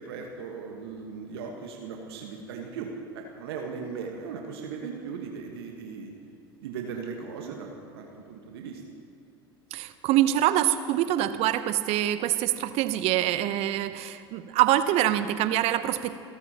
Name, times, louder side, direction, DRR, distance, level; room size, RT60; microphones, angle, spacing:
voice 1, 0.0-6.1 6.6-8.8, right 5 dB, 70° right, 2 dB, 1.5 m, -38 dB
voice 2, 9.7-16.2, right 13 dB, 50° right, 12 dB, 0.8 m, -25 dB
28.0 x 13.5 x 3.0 m, 2.6 s
figure-of-eight pair, 70°, 13 cm